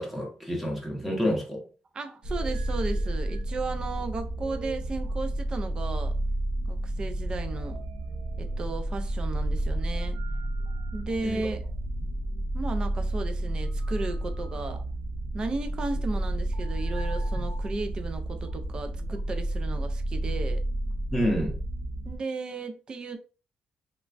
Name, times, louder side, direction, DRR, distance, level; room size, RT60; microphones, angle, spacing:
voice 1, 0.0-1.6 11.2-11.4 21.1-21.6, equal, 5° right, 0.7 m, -28 dB
voice 2, 1.9-6.1 6.7-7.8 8.4-10.2 10.9-11.6 12.5-14.8 15.3-20.6 22.0-23.2, right 3 dB, 25° right, 0.3 m, -35 dB
sound 1, 2.2-22.2, right 1 dB, 70° right, 0.7 m, -31 dB
3.1 x 2.1 x 2.4 m
cardioid pair, 165°, 3 cm